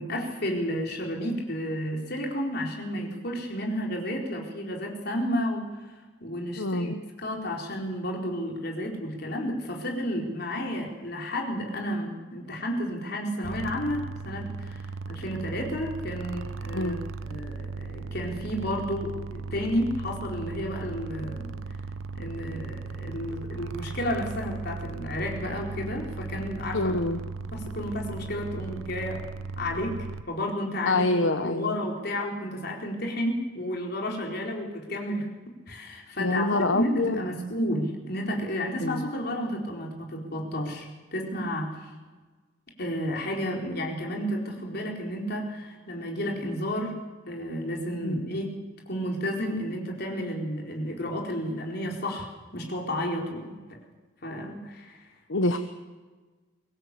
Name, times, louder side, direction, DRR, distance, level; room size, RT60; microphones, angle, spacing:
voice 1, 0.0-5.6 6.2-6.9 7.2-17.0 17.3-21.5 22.1-26.9 27.5-29.2 29.6-30.0 30.3-31.1 31.4-35.3 35.7-41.8 42.8-47.0 47.3-48.5 48.9-53.6 54.2-55.0 55.4-55.6, equal, 55° left, 0 dB, 4.3 m, -31 dB
voice 2, 6.6-6.9 16.7-17.0 26.7-27.2 30.8-31.8 36.2-37.2 38.8-39.0 48.0-48.2 55.3-55.6, left 2 dB, 70° left, 8 dB, 1.1 m, -26 dB
sound 1, 13.4-30.2, right 4 dB, 85° right, 0.8 m, -37 dB
23.5 x 17.5 x 8.4 m, 1.3 s
head